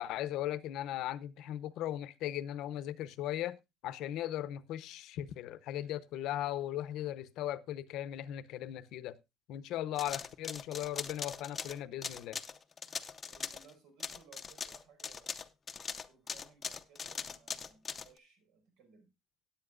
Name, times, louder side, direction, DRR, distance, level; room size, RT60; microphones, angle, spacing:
voice 1, 0.0-3.6 3.8-9.2 9.5-12.4, left 12 dB, 60° left, 0.7 m, -38 dB
sound 1, 10.0-13.7 14.0-18.1, left 6 dB, 20° left, 0.6 m, -41 dB
voice 2, 13.2-15.4 15.7-19.1, right 5 dB, 80° right, 5.0 m, -62 dB
17.5 x 8.5 x 2.4 m
cardioid pair, 165°, 0 cm